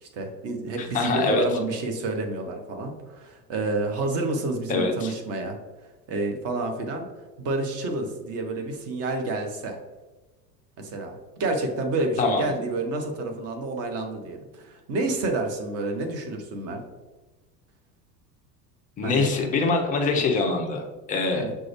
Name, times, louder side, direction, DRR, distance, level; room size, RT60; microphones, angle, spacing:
voice 1, 0.0-5.6 6.1-7.1 7.4-9.8 10.8-16.8 19.0-19.3 21.4-21.6, right 2 dB, 30° right, 4 dB, 0.7 m, -29 dB
voice 2, 0.9-1.4 4.7-5.1 12.2-12.5 19.0-21.5, left 3 dB, 20° left, 2 dB, 0.4 m, -24 dB
6.1 x 2.2 x 3.0 m, 1.2 s
figure-of-eight pair, 75°, 50 cm